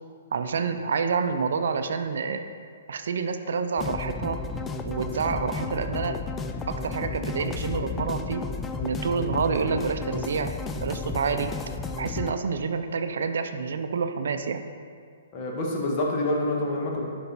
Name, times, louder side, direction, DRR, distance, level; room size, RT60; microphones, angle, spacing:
voice 1, 0.3-2.4 2.9-4.4 4.9-6.2 6.7-8.5 8.8-10.5 10.8-11.5 12.0-14.6, right 5 dB, 70° right, 8 dB, 0.4 m, -28 dB
sound 1, 3.8-12.3, left 4 dB, 15° left, 0.3 m, -33 dB
voice 2, 15.3-17.0, left 1 dB, 35° left, -2 dB, 1.4 m, -27 dB
6.8 x 5.4 x 4.1 m, 2.1 s
hypercardioid pair, 135°, 0 cm